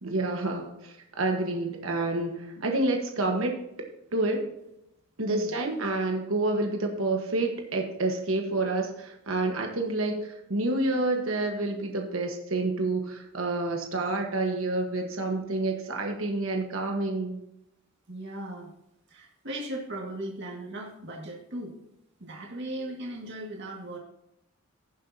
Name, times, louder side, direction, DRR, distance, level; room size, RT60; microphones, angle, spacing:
voice 1, 0.0-3.6 4.1-4.5 5.2-17.4, right 2 dB, 80° right, 3 dB, 1.3 m, -28 dB
voice 2, 5.2-5.6 18.1-18.7 19.1-21.8 22.2-24.0, right 1 dB, 55° right, -1 dB, 2.0 m, -37 dB
16.5 x 6.9 x 2.8 m, 0.82 s
head